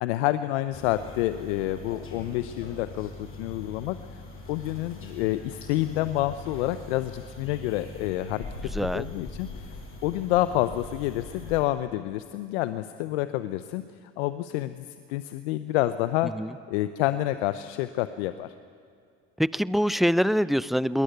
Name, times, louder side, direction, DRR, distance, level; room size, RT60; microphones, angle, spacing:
voice 1, 0.0-4.0 4.5-8.4 8.9-9.7 10.0-13.8 14.2-16.3 16.7-18.5, left 15 dB, 85° left, 12 dB, 0.8 m, -28 dB
sound 1, 0.7-11.6, left 3 dB, 40° left, 6.7 m, -41 dB
voice 2, 8.7-9.1 16.4-16.5 19.4-21.0, equal, ahead, 17 dB, 0.5 m, -24 dB
22.0 x 19.0 x 9.4 m, 2.3 s
supercardioid pair, 85°, 32 cm